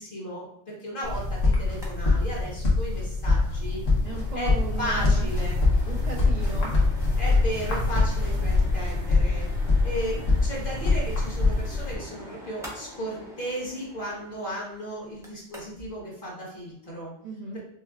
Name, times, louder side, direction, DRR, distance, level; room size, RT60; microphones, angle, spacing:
voice 1, 0.0-3.8 4.3-5.6 7.2-9.5 9.8-17.1 17.5-17.6, equal, 45° left, -4 dB, 1.5 m, -35 dB
sound 1, 1.0-11.9, left 3 dB, 70° left, 1.4 m, -24 dB
sound 2, 1.7-2.0 2.2-2.3 2.7-2.8 3.2-15.9, equal, 5° right, 0.6 m, -45 dB
voice 2, 4.0-5.3 5.9-6.7 17.2-17.6, right 3 dB, 85° right, -1 dB, 0.3 m, -36 dB
5.9 x 2.2 x 2.3 m, 0.77 s
omnidirectional pair, 1.3 m